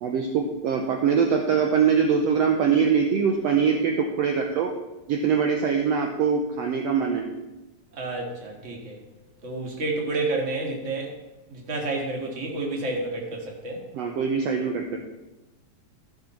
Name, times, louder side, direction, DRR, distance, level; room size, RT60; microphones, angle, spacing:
voice 1, 0.0-4.7 5.1-7.3 13.9-15.0, right 6 dB, 70° right, 3 dB, 1.7 m, -23 dB
voice 2, 7.9-9.0 9.4-11.1 11.5-13.8, right 2 dB, 30° right, 0 dB, 1.8 m, -30 dB
13.0 x 6.5 x 5.8 m, 1.0 s
omnidirectional pair, 3.5 m